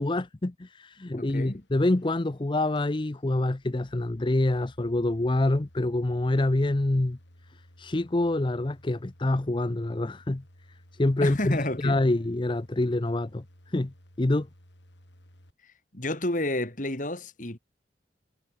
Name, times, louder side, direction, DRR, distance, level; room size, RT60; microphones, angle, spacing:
voice 1, 0.0-7.2 7.8-10.4 11.0-14.5, left 2 dB, 25° left, 0.6 m, -26 dB
voice 2, 1.2-1.6 11.2-12.0 15.6-17.6, left 1 dB, 45° left, 3.7 m, -31 dB
sound 1, 1.5-15.5, equal, 80° left, 7.2 m, -56 dB
head